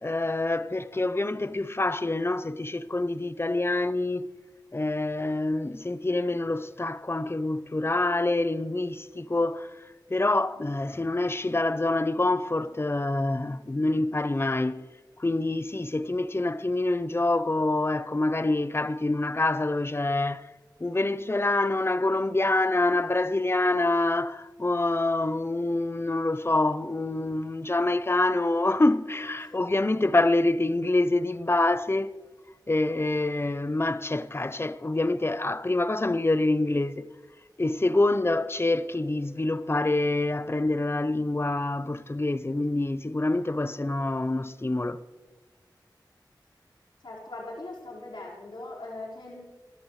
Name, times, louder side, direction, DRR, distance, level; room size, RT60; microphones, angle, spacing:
voice 1, 0.0-4.3 4.7-9.7 10.1-14.9 15.2-20.5 20.8-32.1 32.7-37.1 37.6-45.0, left 2 dB, 30° left, 0.7 m, -26 dB
voice 2, 47.0-49.4, left 2 dB, 85° left, 4.9 m, -40 dB
27.0 x 13.5 x 3.3 m
wide cardioid pair, 70°, 8 cm